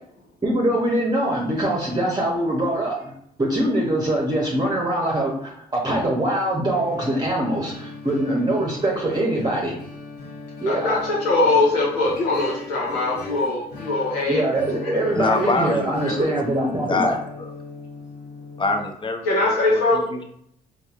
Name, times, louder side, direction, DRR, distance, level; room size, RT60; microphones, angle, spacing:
voice 1, 0.4-3.1 3.4-9.7 10.6-10.9 14.3-17.1, right 1 dB, 25° right, -3 dB, 0.9 m, -23 dB
sound 1, 6.7-18.9, left 3 dB, 60° left, 1.2 m, -38 dB
voice 2, 10.7-14.5 14.8-15.0 19.2-20.2, left 2 dB, 85° left, -4 dB, 1.3 m, -21 dB
voice 3, 15.1-16.3 16.7-17.5 18.6-20.0, left 3 dB, 25° left, 4 dB, 0.7 m, -25 dB
4.1 x 2.5 x 2.5 m, 0.68 s
hypercardioid pair, 55°, 18 cm